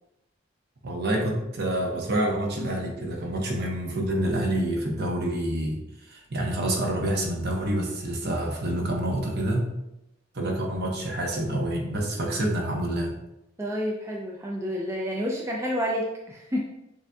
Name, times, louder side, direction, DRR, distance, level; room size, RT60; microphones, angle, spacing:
voice 1, 0.8-5.8 6.1-9.7 10.3-13.1, right 1 dB, 55° right, 0 dB, 0.9 m, -27 dB
voice 2, 13.6-16.6, equal, 15° right, -2 dB, 0.4 m, -29 dB
6.9 x 2.6 x 2.3 m, 0.89 s
head